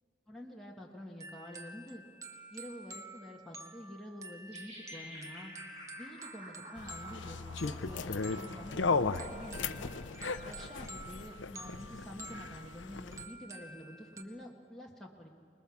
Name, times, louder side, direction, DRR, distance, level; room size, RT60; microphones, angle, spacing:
voice 1, 0.3-2.0 2.5-5.5 5.9-9.9 10.4-15.3, left 1 dB, ahead, -3 dB, 1.6 m, -48 dB
sound 1, 1.2-14.2, right 2 dB, 15° right, 1.0 m, -50 dB
sound 2, 4.5-10.8, equal, 35° right, 7.0 m, -51 dB
sound 3, 6.8-13.2, left 4 dB, 80° left, 0.7 m, -36 dB
25.5 x 20.5 x 7.1 m, 2.2 s
head